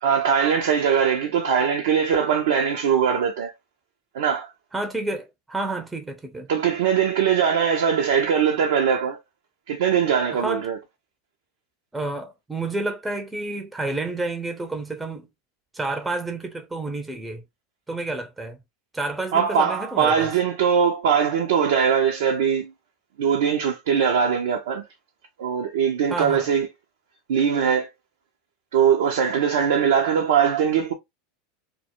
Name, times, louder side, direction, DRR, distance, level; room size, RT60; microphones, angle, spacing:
voice 1, 0.0-3.5 4.1-4.5 6.5-9.2 9.7-10.8 19.3-22.7 23.2-24.8 25.4-26.7 27.3-27.9 28.7-30.9, right 7 dB, 75° right, 0.4 m, -21 dB
voice 2, 4.7-6.5 10.3-10.7 11.9-15.3 15.7-17.4 17.9-18.6 18.9-20.3 26.1-26.5, right 2 dB, 10° right, 0.5 m, -30 dB
2.1 x 2.0 x 2.8 m
hypercardioid pair, 90°, 0 cm